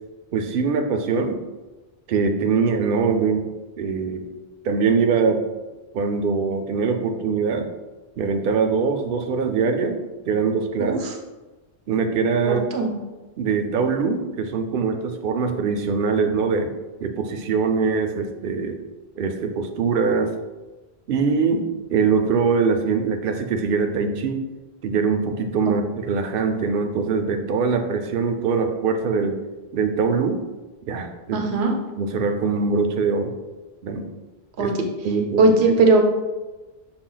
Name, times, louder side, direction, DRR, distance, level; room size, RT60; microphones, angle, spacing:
voice 1, 0.3-1.4 2.1-4.3 4.6-5.4 5.9-7.7 8.2-11.0 11.9-12.7 13.4-16.7 17.0-18.8 19.2-20.3 21.1-24.4 24.8-29.4 29.7-30.4 30.9-31.4 32.0-33.4 33.8-34.1 34.6-34.7 35.0-35.4, right 5 dB, 60° right, 5 dB, 0.7 m, -22 dB
voice 2, 12.4-12.9 31.3-31.7 34.6-34.7 35.4-36.0, right 3 dB, 85° right, 3 dB, 1.0 m, -18 dB
5.9 x 2.3 x 3.9 m, 1.2 s
omnidirectional pair, 1.1 m